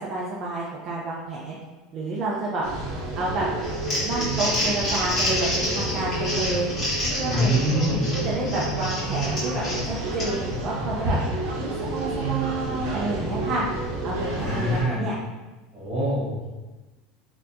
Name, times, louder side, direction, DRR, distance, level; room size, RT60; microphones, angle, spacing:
voice 1, 0.0-1.6 1.9-2.6 3.2-3.5 4.0-6.7 7.2-7.8 8.2-11.2 11.6-13.6 14.0-15.2, right 2 dB, 35° right, -5 dB, 0.6 m, -29 dB
sound 1, 2.6-14.8, right 2 dB, 70° right, 0.9 m, -29 dB
Crumpling crinkling, 3.6-10.5, left 1 dB, 20° left, 1.3 m, -29 dB
voice 2, 7.2-8.0 14.2-15.0 15.7-16.5, equal, 20° right, -8 dB, 1.3 m, -25 dB
4.2 x 2.8 x 2.6 m, 1.2 s
supercardioid pair, 160°, 0 cm